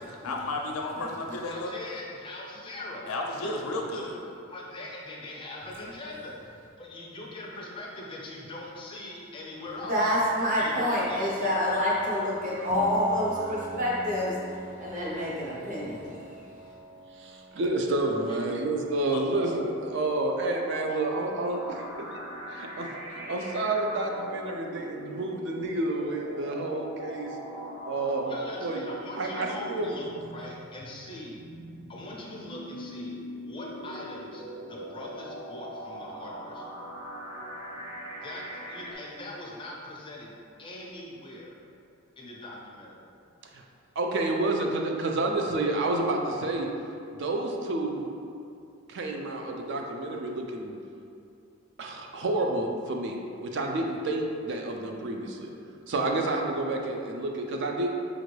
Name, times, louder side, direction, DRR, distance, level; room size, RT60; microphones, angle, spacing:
voice 1, 0.2-1.7 3.1-4.1 19.1-19.2, left 2 dB, 80° left, 1 dB, 0.5 m, -32 dB
voice 2, 1.4-3.1 3.4-3.5 3.9-4.2 4.5-10.2 10.6-11.5 18.3-18.4 28.3-31.4 31.9-34.4 34.7-36.8 38.2-40.3 40.6-41.6 42.2-43.0, left 1 dB, 25° left, -2 dB, 0.4 m, -41 dB
voice 3, 9.8-14.3 14.8-16.2, left 1 dB, 35° right, -6 dB, 0.9 m, -27 dB
Piano, 12.7-22.3, right 1 dB, 5° right, 0.7 m, -44 dB
voice 4, 17.2-22.2 22.5-27.4 27.8-28.3 28.6-28.8 29.2-29.9 43.5-43.6 44.0-46.7 47.1-48.1 48.9-50.8 51.8-55.5 55.9-57.9, right 2 dB, 55° right, 1 dB, 0.3 m, -29 dB
sound 1, 19.3-38.9, right 1 dB, 75° right, 0.8 m, -41 dB
5.1 x 2.5 x 3.1 m, 2.6 s
head